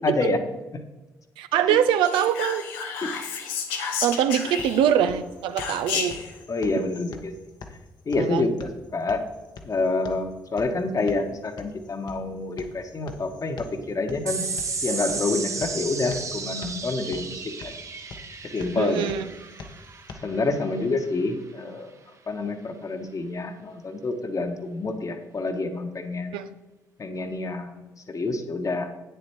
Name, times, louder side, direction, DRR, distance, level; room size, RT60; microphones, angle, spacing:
voice 1, 0.0-0.4 1.5-1.8 3.0-3.1 6.5-7.3 8.1-9.2 9.6-14.5 14.8-17.7 18.5-19.1 20.2-21.9 22.3-26.4 27.0-28.9, left 3 dB, 40° left, 6 dB, 1.4 m, -28 dB
voice 2, 1.4-2.6 4.0-6.2 8.2-8.5 18.8-19.3 26.3-26.5, right 9 dB, 70° right, 10 dB, 0.6 m, -23 dB
Whispering, 2.0-5.0 5.6-6.3, left 6 dB, 80° left, 1.0 m, -31 dB
sound 1, 4.1-20.1, left 4 dB, 55° left, 1.2 m, -45 dB
sound 2, 14.3-21.0, right 4 dB, 35° right, 1.1 m, -34 dB
9.1 x 6.9 x 4.5 m, 1.1 s
hypercardioid pair, 45°, 9 cm